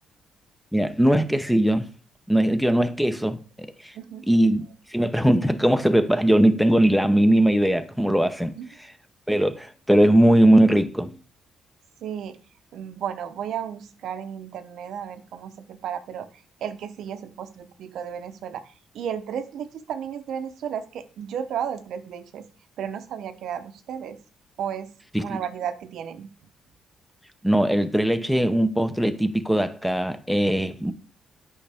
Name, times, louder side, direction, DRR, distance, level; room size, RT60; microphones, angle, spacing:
voice 1, 0.7-1.9 2.3-3.9 4.3-4.7 4.9-8.5 9.3-11.1 25.1-25.4 27.4-30.9, right 1 dB, ahead, 0.7 m, -20 dB
voice 2, 3.9-4.3 8.6-8.7 12.0-12.4 12.7-16.3 16.6-22.4 22.8-24.2 24.6-24.9 25.2-26.3, right 8 dB, 75° right, 0.7 m, -33 dB
8.4 x 5.5 x 3.4 m
cardioid pair, 90°, 0 cm